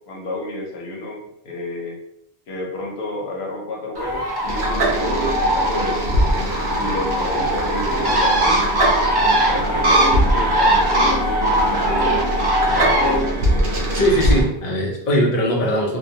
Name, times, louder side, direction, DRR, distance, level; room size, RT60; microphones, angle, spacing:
voice 1, 0.0-2.0 2.5-6.5 6.7-8.6 9.5-13.3, left 2 dB, 80° left, -1 dB, 0.9 m, -31 dB
Bird, 3.9-13.2, right 1 dB, 35° right, 0.4 m, -20 dB
sound 1, 4.4-14.5, right 1 dB, 65° right, 0.7 m, -22 dB
voice 2, 13.9-16.0, equal, 50° left, -2 dB, 0.7 m, -20 dB
2.2 x 2.1 x 2.7 m, 0.76 s
omnidirectional pair, 1.1 m